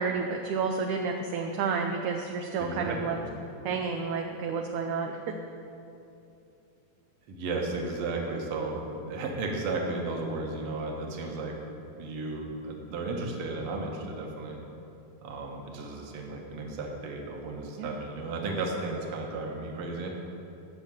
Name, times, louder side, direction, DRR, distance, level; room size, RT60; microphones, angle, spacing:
voice 1, 0.0-3.2 3.6-5.3 17.8-18.0, right 5 dB, 75° right, 3 dB, 1.9 m, -30 dB
voice 2, 2.6-3.3 7.3-11.5 12.0-14.6 15.2-20.1, right 3 dB, 50° right, 0 dB, 2.0 m, -34 dB
14.5 x 6.4 x 9.0 m, 2.8 s
omnidirectional pair, 4.2 m